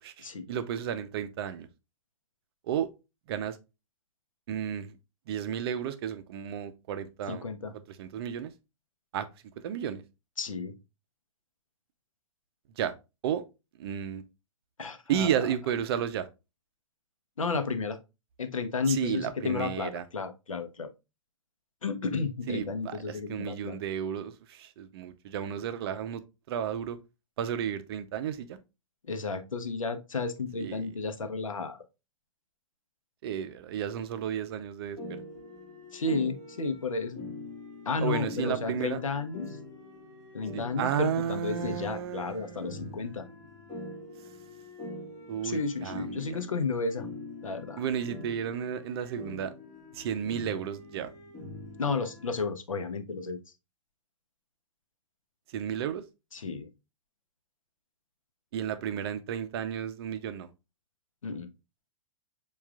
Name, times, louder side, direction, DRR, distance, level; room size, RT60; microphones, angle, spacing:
voice 1, 0.0-1.7 2.7-2.9 3.3-3.6 4.5-5.0 5.3-7.5 7.9-8.5 9.1-9.3 9.6-10.0 12.8-12.9 13.2-13.4 13.8-14.2 15.1-16.3 18.9-20.0 22.5-26.2 26.5-27.0 27.4-28.6 30.6-30.9 33.2-35.2 38.0-39.0 40.5-43.3 45.3-46.4 47.8-49.5 49.9-51.1 55.5-56.0 58.5-60.5, right 9 dB, 50° right, 0.5 m, -33 dB
voice 2, 7.3-7.7 10.4-10.7 14.8-15.3 17.4-18.0 18.4-20.9 21.8-23.8 29.1-31.8 35.9-37.2 37.9-39.5 40.3-43.2 45.4-47.1 47.4-47.8 51.8-53.4 56.3-56.7 61.2-61.5, left 4 dB, 85° left, 0.6 m, -32 dB
sound 1, 35.0-52.4, left 2 dB, 25° left, 1.5 m, -44 dB
7.0 x 2.4 x 2.3 m
figure-of-eight pair, 110°, 17 cm